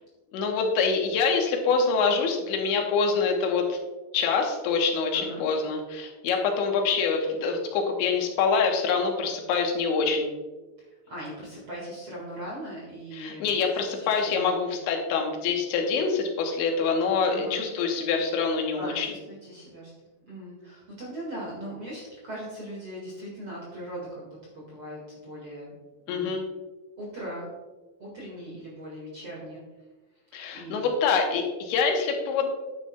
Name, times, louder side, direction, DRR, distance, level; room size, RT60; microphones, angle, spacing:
voice 1, 0.3-3.8 4.1-10.4 13.1-19.1 26.1-26.4 30.3-32.5, left 5 dB, 85° left, 2 dB, 3.4 m, -25 dB
voice 2, 5.1-5.4 10.8-13.5 13.9-14.8 17.3-17.6 18.8-19.9 20.3-25.7 26.1-26.4 27.0-27.5 28.0-29.6 30.5-30.9, right 1 dB, 45° right, -4 dB, 2.0 m, -39 dB
10.5 x 9.2 x 2.3 m, 1.2 s
omnidirectional pair, 5.2 m